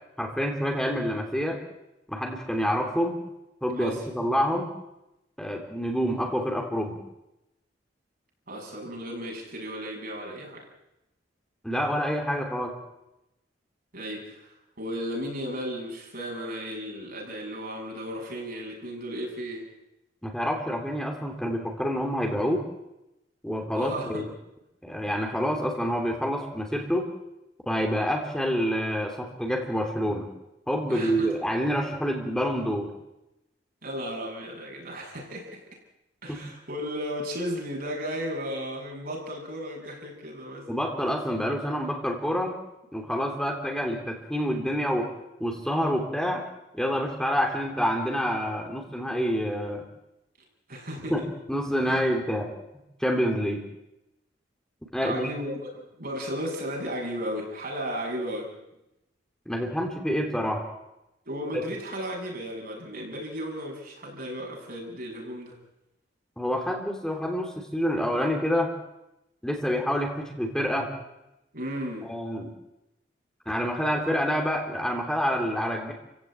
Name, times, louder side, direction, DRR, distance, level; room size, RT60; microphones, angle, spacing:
voice 1, 0.2-1.6 2.1-3.2 3.6-4.7 5.4-7.0 11.6-12.7 20.2-22.6 23.4-24.3 24.8-27.1 27.7-30.3 30.7-32.9 36.3-36.4 40.7-42.6 42.9-45.1 45.4-46.4 46.7-49.8 51.1-51.2 51.5-52.5 53.0-53.7 54.9-55.3 59.5-60.6 61.5-61.6 66.4-68.7 69.4-70.9 72.0-72.5 73.5-75.9, equal, 5° left, 1 dB, 3.1 m, -27 dB
voice 2, 8.5-10.7 13.9-19.7 23.7-24.2 30.9-31.3 33.8-35.8 36.2-40.7 50.7-51.2 51.9-52.0 55.0-58.5 61.3-65.6 71.5-72.1, equal, 55° right, 0 dB, 6.9 m, -35 dB
29.5 x 16.0 x 8.8 m, 0.91 s
head